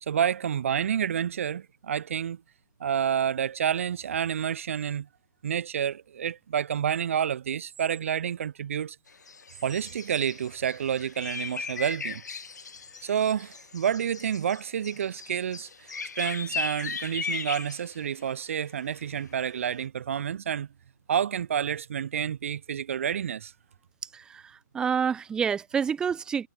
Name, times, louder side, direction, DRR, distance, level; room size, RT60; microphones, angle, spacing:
voice 1, 0.0-2.4 2.8-5.1 5.4-9.0 9.6-12.2 13.0-20.7 21.1-23.5, right 8 dB, 40° right, 0.7 m, -29 dB
sound 1, 9.1-19.5, left 5 dB, 60° left, 1.8 m, -38 dB
voice 2, 24.7-26.5, right 7 dB, 5° right, 0.9 m, -28 dB
figure-of-eight pair, 140°, 10 cm